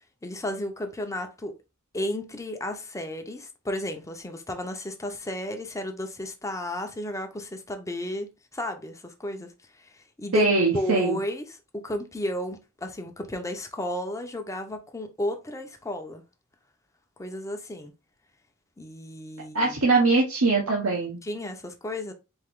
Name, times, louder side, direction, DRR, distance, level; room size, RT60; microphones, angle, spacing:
voice 1, 0.2-1.5 1.9-10.5 10.7-11.6 11.8-16.2 17.2-17.9 18.8-19.9 21.2-22.1, equal, 15° left, 0.7 m, -33 dB
voice 2, 10.3-11.2 19.5-21.2, right 3 dB, 85° right, 1.1 m, -22 dB
4.4 x 2.9 x 3.6 m
head